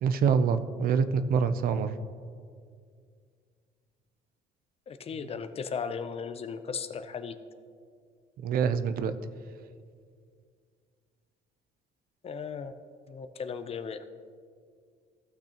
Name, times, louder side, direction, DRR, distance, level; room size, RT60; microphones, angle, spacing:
voice 1, 0.0-1.9 8.4-9.1, right 6 dB, 60° right, 11 dB, 0.5 m, -26 dB
voice 2, 4.9-7.3 12.2-12.7 13.1-14.0, left 6 dB, 35° left, 11 dB, 0.5 m, -36 dB
16.0 x 6.0 x 2.9 m, 2.1 s
cardioid pair, 110°, 17 cm